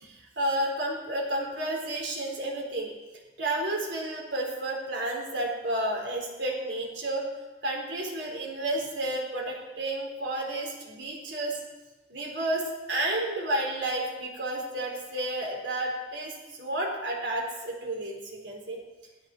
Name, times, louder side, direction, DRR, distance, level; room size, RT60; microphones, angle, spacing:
voice 1, 0.0-2.9 3.4-7.2 7.6-11.5 12.1-16.3 16.6-18.8, right 1 dB, 65° right, 0 dB, 4.1 m, -31 dB
16.5 x 12.5 x 6.2 m, 1.2 s
head